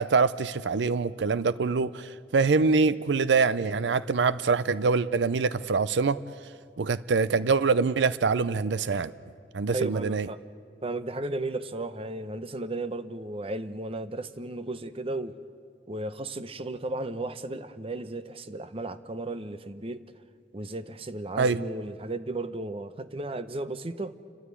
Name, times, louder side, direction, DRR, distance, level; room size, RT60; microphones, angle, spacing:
voice 1, 0.0-6.2 6.8-9.1 9.5-10.3 21.4-21.6, right 4 dB, 85° right, 16 dB, 0.5 m, -24 dB
voice 2, 9.7-10.4 10.8-15.4 15.9-20.0 20.5-24.1, right 2 dB, 35° right, 12 dB, 0.8 m, -34 dB
30.0 x 12.5 x 9.8 m, 2.3 s
head